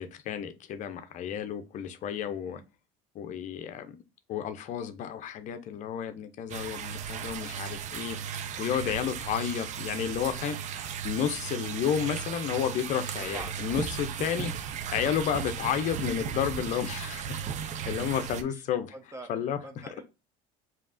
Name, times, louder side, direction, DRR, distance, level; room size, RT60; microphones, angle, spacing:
voice 1, 0.0-2.6 3.1-4.0 4.3-8.2 8.6-10.6 11.0-14.5 14.9-17.4 17.9-18.9 19.3-19.6, left 9 dB, 50° left, 0.6 m, -31 dB
sound 1, 6.5-18.4, right 8 dB, 45° right, 0.5 m, -36 dB
voice 2, 17.7-18.6 18.9-20.0, right 2 dB, 15° right, 0.8 m, -47 dB
5.1 x 2.8 x 2.5 m
supercardioid pair, 90°, 16 cm